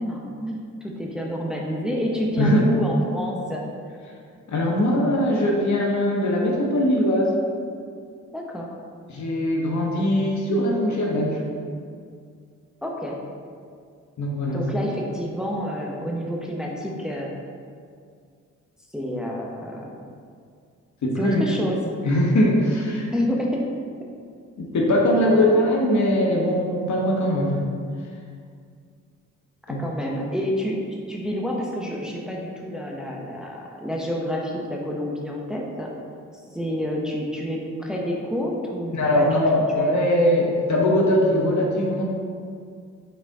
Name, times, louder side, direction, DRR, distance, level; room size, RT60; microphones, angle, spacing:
voice 1, 0.0-3.6 8.3-8.7 12.8-13.2 14.5-17.3 18.9-20.0 21.2-21.8 23.1-23.6 25.5-25.6 29.8-30.8 31.1-35.9 36.5-39.3 39.8-39.9, equal, ahead, -2 dB, 1.0 m, -28 dB
voice 2, 4.5-7.4 9.1-11.4 14.2-14.6 21.0-21.4 22.0-23.1 24.6-27.6 29.7-29.8 38.9-42.0, left 1 dB, 55° left, -1 dB, 1.4 m, -21 dB
5.9 x 4.3 x 3.7 m, 2.2 s
hypercardioid pair, 50°, 34 cm